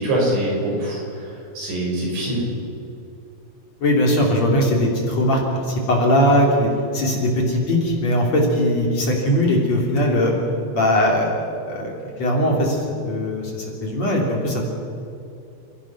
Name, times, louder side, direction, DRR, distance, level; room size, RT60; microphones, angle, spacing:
voice 1, 0.0-2.4, right 1 dB, 90° right, -3 dB, 8.7 m, -24 dB
voice 2, 3.8-10.3 10.7-11.3 11.7-11.9 12.2-14.6, equal, 40° left, -1 dB, 4.1 m, -20 dB
29.5 x 16.5 x 6.1 m, 2.6 s
omnidirectional pair, 5.0 m